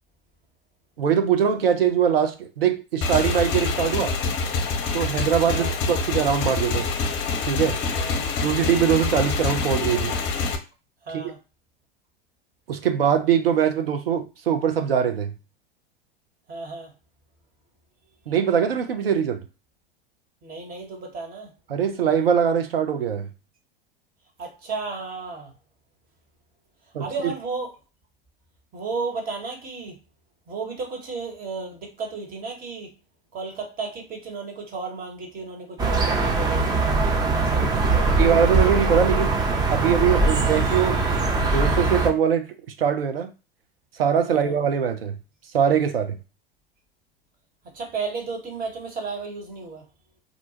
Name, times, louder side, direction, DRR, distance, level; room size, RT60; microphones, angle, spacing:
voice 1, 1.0-4.1 4.9-6.9 7.4-7.8 8.4-10.2 11.1-11.2 12.7-15.3 18.3-19.4 21.7-23.3 26.9-27.3 37.6-37.7 38.1-39.4 39.7-41.0 41.4-43.3 44.0-45.2 45.5-46.2, right 8 dB, 80° right, 0.5 m, -22 dB
Motorcycle / Engine, 3.0-10.6, left 4 dB, 40° left, 0.6 m, -26 dB
voice 2, 7.9-8.3 11.0-11.4 16.5-16.9 20.4-21.5 24.4-25.5 27.0-27.7 28.7-30.0 30.5-32.9 33.3-38.3 44.3-44.5 47.6-49.8, right 4 dB, 30° right, 1.0 m, -33 dB
sound 1, 35.8-42.1, right 3 dB, 15° right, 0.4 m, -21 dB
2.6 x 2.1 x 2.8 m
figure-of-eight pair, 85°, 29 cm